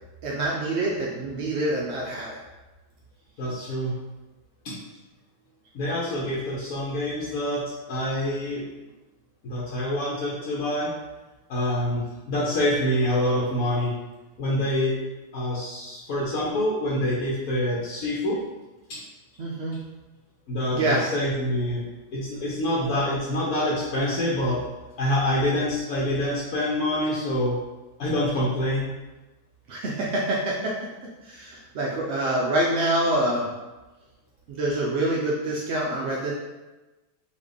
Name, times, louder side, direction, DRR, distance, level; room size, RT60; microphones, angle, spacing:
voice 1, 0.2-2.4 19.4-19.8 20.7-21.0 29.7-30.7 31.2-33.5 34.5-36.3, right 1 dB, 75° right, -3 dB, 0.6 m, -26 dB
voice 2, 3.4-3.9 4.6-4.7 5.7-7.6 7.9-8.6 9.4-10.9 11.5-13.9 14.4-15.0 15.3-18.4 18.9-19.0 20.5-21.8 22.1-24.6 25.0-27.6 28.0-28.9, left 1 dB, 65° left, -6 dB, 1.2 m, -26 dB
4.0 x 2.8 x 3.4 m, 1.1 s
omnidirectional pair, 1.8 m